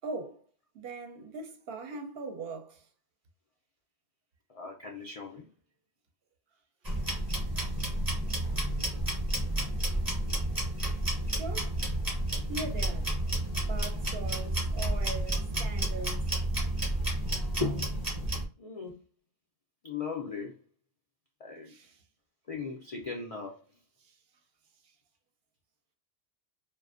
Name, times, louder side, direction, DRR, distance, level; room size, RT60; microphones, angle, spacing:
voice 1, 0.0-0.4 0.7-2.9 7.6-7.8 11.3-11.8 12.5-13.1 13.6-16.3 21.7-22.0 24.0-24.1, right 3 dB, 65° right, 0.8 m, -41 dB
voice 2, 4.5-5.5 18.6-19.0 19.8-20.6 21.4-21.7 22.5-23.6, left 5 dB, 60° left, 0.3 m, -39 dB
sound 1, 6.8-18.4, right 1 dB, 25° right, 0.7 m, -31 dB
2.4 x 2.1 x 2.4 m
omnidirectional pair, 1.1 m